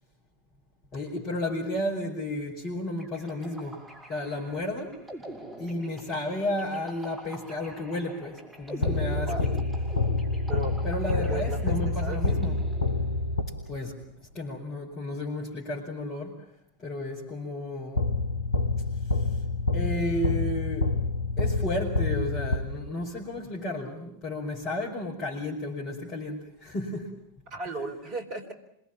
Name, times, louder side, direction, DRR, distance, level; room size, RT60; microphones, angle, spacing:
voice 1, 0.9-5.0 5.6-9.5 10.8-12.6 13.7-16.5 16.8-18.1 19.1-19.3 19.7-20.9 21.4-27.2, left 1 dB, 30° left, -3 dB, 5.4 m, -33 dB
sound 1, 3.0-13.4, right 1 dB, 10° right, 5.7 m, -44 dB
sound 2, 8.8-13.9 18.0-23.2, left 3 dB, 75° left, 1.0 m, -28 dB
voice 2, 9.3-9.6 10.3-10.8 11.2-12.3 27.5-28.5, right 2 dB, 40° right, 8 dB, 4.1 m, -36 dB
26.5 x 22.5 x 7.4 m, 0.75 s
figure-of-eight pair, 90°, 0 cm